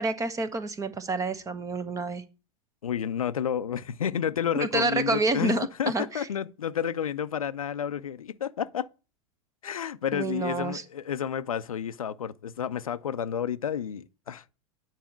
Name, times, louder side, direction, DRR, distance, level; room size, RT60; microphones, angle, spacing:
voice 1, 0.0-2.2 4.5-6.3 10.1-10.8, right 3 dB, 20° right, 1.1 m, -28 dB
voice 2, 2.8-8.9 9.6-14.5, left 8 dB, 80° left, 0.6 m, -31 dB
9.1 x 4.2 x 7.1 m
figure-of-eight pair, 95°, 18 cm